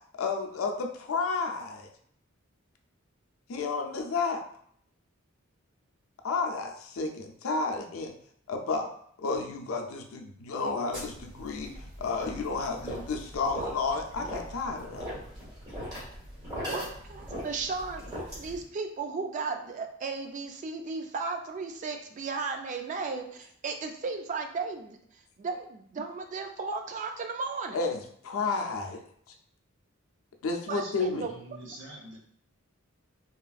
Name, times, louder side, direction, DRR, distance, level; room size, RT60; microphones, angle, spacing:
voice 1, 0.2-1.9 3.5-4.4 6.2-8.1 8.5-8.9 9.2-11.7 12.0-15.1 27.7-29.0 30.4-31.3, left 4 dB, 85° left, 3 dB, 0.4 m, -31 dB
sound 1, 10.9-18.6, equal, 20° right, 1.4 m, -40 dB
voice 2, 16.7-25.0 25.4-27.8 30.7-31.3, right 4 dB, 35° right, 5 dB, 0.3 m, -35 dB
voice 3, 30.7-32.2, right 1 dB, 60° right, -1 dB, 0.7 m, -46 dB
2.9 x 2.4 x 2.3 m, 0.65 s
head